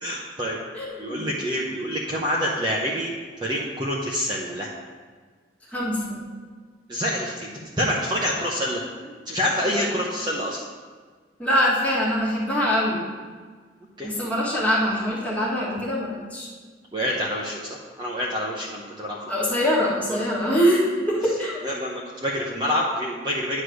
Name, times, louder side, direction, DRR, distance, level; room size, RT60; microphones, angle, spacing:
voice 1, 0.0-0.6 1.0-3.1 3.4-4.7 6.9-7.5 7.8-8.8 9.3-10.6 14.0-14.1 16.9-17.6 18.0-19.2 21.6-23.6, equal, 20° right, -4 dB, 0.7 m, -26 dB
voice 2, 0.7-1.2 5.7-6.2 11.4-13.0 14.0-16.5 19.3-21.7, equal, 5° left, -6 dB, 1.5 m, -23 dB
9.5 x 3.2 x 6.3 m, 1.5 s
head